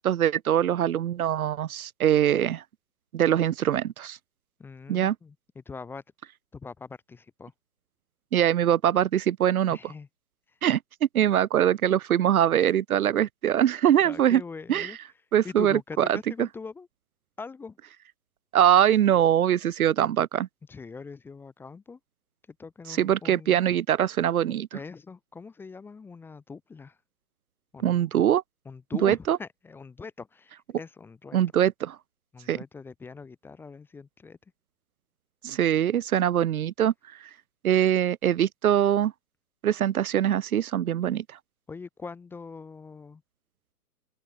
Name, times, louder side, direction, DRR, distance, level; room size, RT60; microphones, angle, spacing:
voice 1, 0.0-2.6 3.1-4.2 4.9-5.1 8.3-9.8 10.6-10.8 11.1-14.4 14.7-14.9 15.3-16.2 18.5-20.5 23.0-24.8 27.8-28.4 29.0-29.4 31.3-32.0 32.5-32.6 35.4-36.9 37.6-39.1 39.6-41.2, right 10 dB, 65° right, 0.8 m, -23 dB
voice 2, 4.6-6.0 6.5-7.5 9.7-10.1 14.0-15.0 15.4-16.9 17.4-17.8 20.7-22.0 22.6-23.8 24.7-27.0 27.7-28.1 28.6-31.4 32.3-34.4 41.7-43.2, left 4 dB, 5° left, 1.0 m, -42 dB
hypercardioid pair, 150°, 46 cm